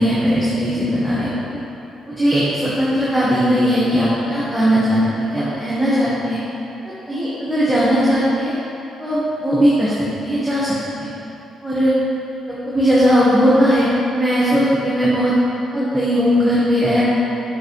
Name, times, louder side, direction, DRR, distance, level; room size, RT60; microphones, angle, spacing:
voice 1, 0.0-1.6 2.1-6.4 7.1-8.5 9.0-11.1 11.6-11.9 12.5-15.3 15.7-17.0, equal, ahead, -10 dB, 1.6 m, -18 dB
9.7 x 6.5 x 3.3 m, 2.9 s
cardioid pair, 90°, 0 cm